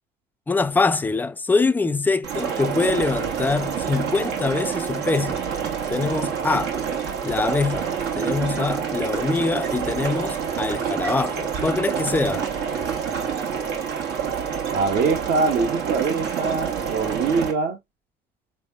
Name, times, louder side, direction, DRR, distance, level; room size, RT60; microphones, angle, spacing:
voice 1, 0.5-5.4 5.9-6.7 7.2-7.9 8.2-12.5, left 4 dB, 10° left, 0.3 m, -24 dB
sound 1, 2.2-17.5, right 7 dB, 85° right, 1.4 m, -27 dB
voice 2, 14.7-17.8, right 4 dB, 70° right, 1.3 m, -23 dB
4.6 x 3.4 x 2.3 m
cardioid pair, 110°, 17 cm